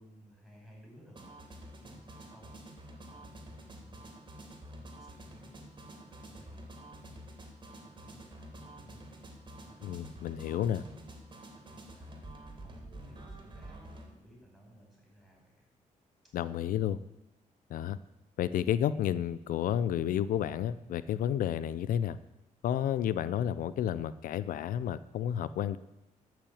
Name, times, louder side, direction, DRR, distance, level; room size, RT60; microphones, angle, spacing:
voice 1, 0.0-2.5 3.1-11.1 11.5-15.7 16.2-16.3, equal, 5° left, -1 dB, 5.5 m, -58 dB
sound 1, 1.1-14.1, right 1 dB, 35° right, 2.8 m, -49 dB
voice 2, 9.8-10.8 16.3-17.0 17.7-18.0 18.4-22.2 22.6-25.8, left 10 dB, 85° left, 15 dB, 0.5 m, -31 dB
13.0 x 6.0 x 8.6 m, 0.92 s
cardioid pair, 115°, 14 cm